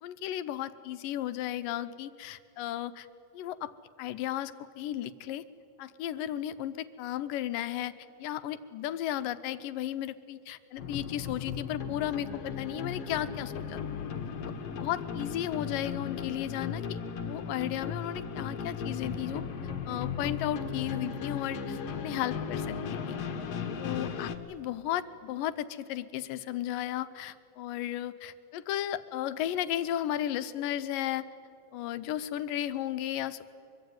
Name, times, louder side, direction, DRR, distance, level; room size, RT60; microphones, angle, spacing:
voice 1, 0.0-3.1 3.3-3.7 4.0-5.4 5.8-7.9 8.2-13.8 14.4-14.5 14.8-19.4 19.9-23.2 23.8-31.3 31.7-33.5, left 12 dB, 75° left, 13 dB, 2.4 m, -34 dB
sound 1, 10.8-24.4, left 6 dB, 55° left, 2.0 m, -36 dB
24.0 x 24.0 x 9.5 m, 2.5 s
omnidirectional pair, 4.2 m